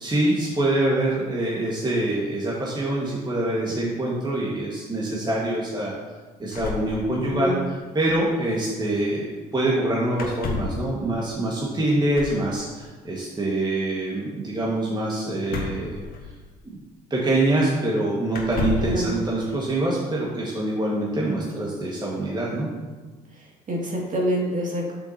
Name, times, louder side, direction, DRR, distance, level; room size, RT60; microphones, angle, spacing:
voice 1, 0.0-5.9 6.4-7.5 7.9-16.0 17.1-22.7, right 1 dB, 20° right, -5 dB, 1.7 m, -25 dB
sound 1, 6.5-7.6 7.8-7.9 8.1-8.3 10.1-10.9 12.1-12.5 15.4-16.6 17.5-17.6 18.3-19.0, left 4 dB, 45° left, 1.5 m, -31 dB
voice 2, 23.7-24.9, equal, 40° right, -2 dB, 2.4 m, -26 dB
7.9 x 7.0 x 2.9 m, 1.3 s
hypercardioid pair, 60°, 20 cm